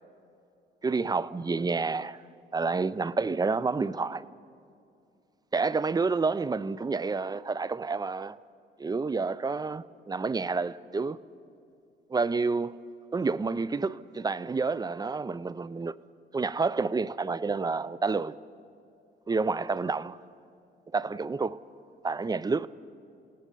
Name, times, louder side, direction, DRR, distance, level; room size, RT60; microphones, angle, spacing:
voice 1, 0.8-2.2 2.5-4.3 5.5-8.4 8.8-11.2 12.1-12.8 13.1-16.0 16.3-18.4 19.3-20.2 20.9-21.6 22.0-22.7, right 4 dB, 20° right, 0.5 m, -29 dB
28.0 x 17.5 x 5.4 m
cardioid pair, 90°, 20 cm